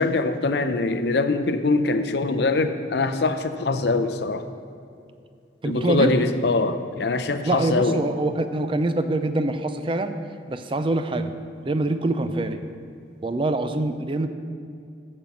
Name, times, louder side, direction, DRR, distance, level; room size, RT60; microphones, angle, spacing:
voice 1, 0.0-4.4 5.6-8.0, left 3 dB, 60° left, 9 dB, 0.5 m, -23 dB
voice 2, 5.6-6.1 7.4-10.2 10.5-11.3 11.6-12.7 13.2-14.3, right 2 dB, 25° right, 9 dB, 0.4 m, -24 dB
8.8 x 5.5 x 7.2 m, 2.4 s
head